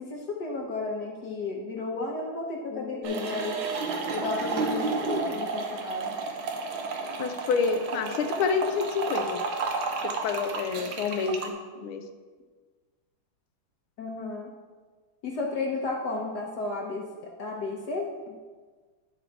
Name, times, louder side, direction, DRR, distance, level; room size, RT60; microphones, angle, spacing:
voice 1, 0.0-3.6 4.1-6.2 14.0-14.5 15.2-18.1, left 3 dB, 65° left, 0 dB, 1.1 m, -33 dB
sound 1, 3.0-11.5, right 4 dB, 75° right, 1.6 m, -32 dB
voice 2, 7.2-9.4 10.2-12.0, left 5 dB, 90° left, 7 dB, 1.5 m, -28 dB
11.0 x 3.8 x 4.4 m, 1.4 s
omnidirectional pair, 2.3 m